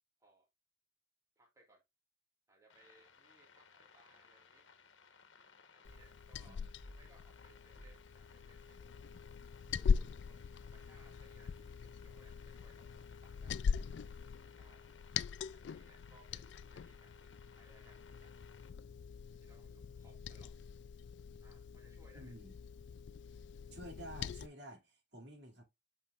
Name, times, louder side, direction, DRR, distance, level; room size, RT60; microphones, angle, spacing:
voice 1, 1.4-1.8 2.5-4.7 5.7-9.2 9.7-13.7 14.5-14.9 15.5-18.5 19.4-20.6 21.4-22.3, right 2 dB, 15° right, 2.0 m, -67 dB
sound 1, 2.7-18.7, left 5 dB, 85° left, 1.2 m, -63 dB
Liquid, 5.9-24.5, left 6 dB, 65° left, 0.3 m, -41 dB
sound 2, 5.9-6.1 6.8-7.1 7.8-8.0 9.7-10.0 11.6-12.1, left 1 dB, 5° left, 2.1 m, -57 dB
voice 2, 22.1-22.6 23.7-25.6, right 1 dB, 60° right, 2.6 m, -51 dB
8.4 x 5.3 x 2.4 m
head